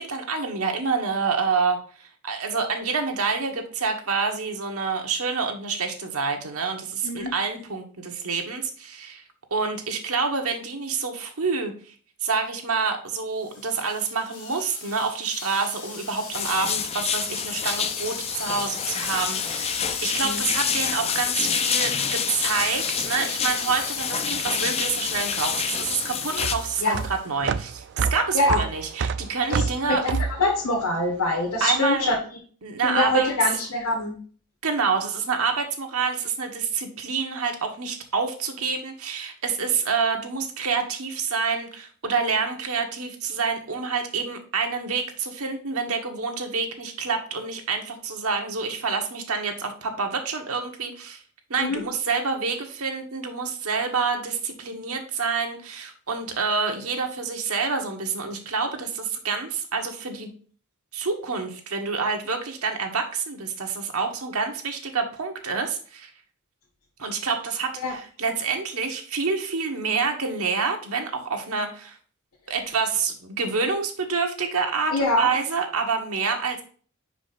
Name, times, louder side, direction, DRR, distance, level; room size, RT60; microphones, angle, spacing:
voice 1, 0.0-9.2 9.5-11.9 12.2-19.7 20.0-30.0 31.6-32.1 32.6-33.3 34.6-51.2 51.5-60.3 60.9-66.1 67.0-72.0 72.5-76.6, right 5 dB, 75° right, 4 dB, 1.3 m, -27 dB
voice 2, 7.0-7.3 20.2-20.4 26.8-27.0 28.3-28.6 29.5-29.6 29.9-32.1 32.9-34.1 51.6-51.8 67.8-67.9 74.9-75.3, left 2 dB, 80° left, -3 dB, 1.6 m, -24 dB
sound 1, 13.4-27.3, left 5 dB, 60° left, 1.4 m, -39 dB
sound 2, 16.3-26.5, left 7 dB, 30° left, 0.5 m, -27 dB
sound 3, 25.0-31.6, right 5 dB, 55° right, 0.3 m, -29 dB
5.4 x 5.0 x 4.1 m, 0.43 s
head